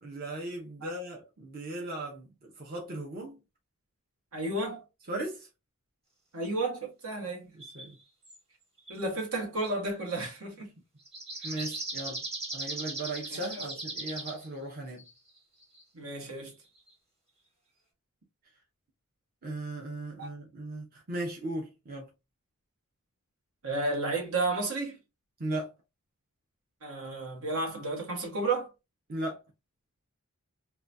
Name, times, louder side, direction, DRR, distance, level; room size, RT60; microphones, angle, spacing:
voice 1, 0.0-3.4 5.1-5.5 7.5-8.0 11.4-12.2 12.5-15.1 19.4-22.1 25.4-25.7 29.1-29.4, right 1 dB, 45° right, 0.8 m, -37 dB
voice 2, 4.3-4.8 6.3-7.5 8.9-10.7 11.4-11.6 13.3-13.7 15.9-16.5 20.2-20.3 23.6-25.0 26.8-28.7, right 2 dB, 75° right, 1.3 m, -32 dB
sound 1, 7.6-7.9 8.2-8.4 8.8-8.9 11.1-14.5 15.0-15.1 15.4-15.8 16.9-17.0, right 2 dB, 30° right, 1.4 m, -38 dB
3.8 x 2.3 x 2.6 m
head